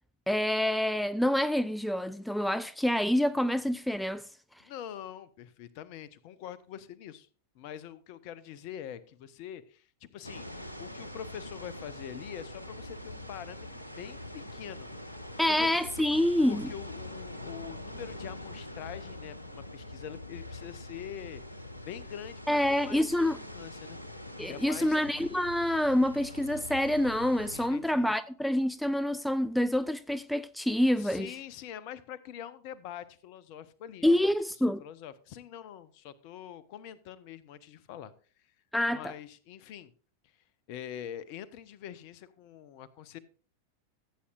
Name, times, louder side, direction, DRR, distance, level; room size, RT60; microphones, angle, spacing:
voice 1, 0.3-4.3 15.4-16.7 22.5-23.4 24.4-31.3 34.0-34.8 38.7-39.1, left 1 dB, 5° left, 0.3 m, -27 dB
voice 2, 4.6-7.3 7.5-15.2 15.5-15.7 16.4-21.4 21.8-24.0 24.5-25.0 27.5-28.2 31.0-34.2 34.6-38.1 38.9-39.9 40.7-43.2, left 10 dB, 45° left, 0.8 m, -44 dB
sound 1, 10.2-27.7, left 1 dB, 85° left, 0.9 m, -43 dB
15.5 x 8.5 x 2.5 m
figure-of-eight pair, 90°, 0 cm